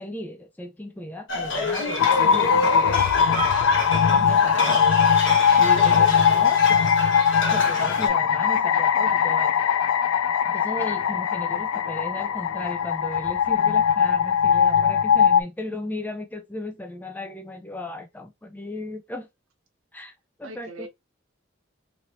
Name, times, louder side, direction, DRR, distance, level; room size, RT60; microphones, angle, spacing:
voice 1, 0.0-3.1 4.1-5.1 5.5-6.8 7.5-9.6 10.4-19.3 19.9-20.1 20.4-20.9, left 1 dB, 10° left, 0.3 m, -36 dB
sound 1, 1.3-8.1, left 2 dB, 60° left, 1.2 m, -27 dB
sound 2, 2.0-15.4, left 7 dB, 85° left, 0.3 m, -20 dB
voice 2, 20.4-20.9, right 2 dB, 80° right, 1.0 m, -42 dB
3.0 x 2.8 x 2.9 m
head